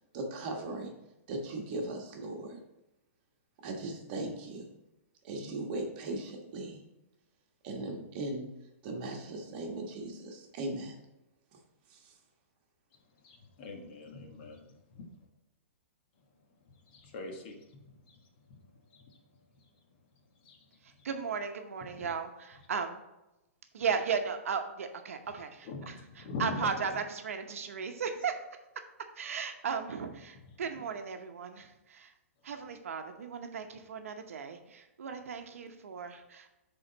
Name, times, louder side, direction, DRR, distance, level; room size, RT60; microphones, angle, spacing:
voice 1, 0.1-0.9 1.3-2.6 3.6-4.7 5.2-6.8 7.6-8.5 8.8-11.0 11.9-12.2, right 2 dB, 40° right, 1 dB, 1.3 m, -38 dB
voice 2, 13.2-15.0 16.9-17.6 18.1-18.2 18.9-19.0 20.4-20.6 22.0-22.1 25.6-26.9, left 3 dB, 45° left, 2 dB, 1.2 m, -42 dB
voice 3, 20.8-23.0 23.7-28.4 29.2-32.1 32.4-36.5, right 6 dB, 80° right, 6 dB, 0.8 m, -36 dB
7.9 x 3.8 x 4.0 m, 0.95 s
hypercardioid pair, 150°, 7 cm